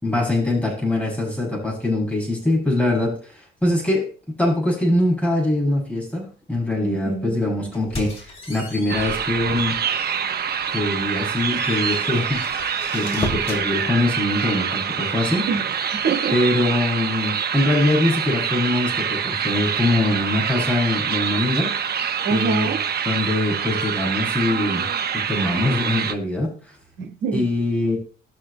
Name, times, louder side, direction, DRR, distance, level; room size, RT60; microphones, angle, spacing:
voice 1, 0.0-4.1 4.4-9.8 10.7-15.5 16.3-21.7 22.3-22.8 23.0-26.8 27.3-28.0, left 1 dB, 5° left, -4 dB, 6.1 m, -23 dB
voice 2, 6.8-7.4 13.0-13.3 15.5-16.3 22.2-22.8 27.0-27.4, right 5 dB, 85° right, -1 dB, 1.6 m, -26 dB
sound 1, 7.7-9.8 10.3-10.4 10.8-13.7, left 1 dB, 30° left, 2.7 m, -34 dB
sound 2, 8.9-26.1, right 7 dB, 55° right, 1.0 m, -25 dB
19.5 x 6.6 x 2.2 m, 0.38 s
cardioid pair, 90°, 20 cm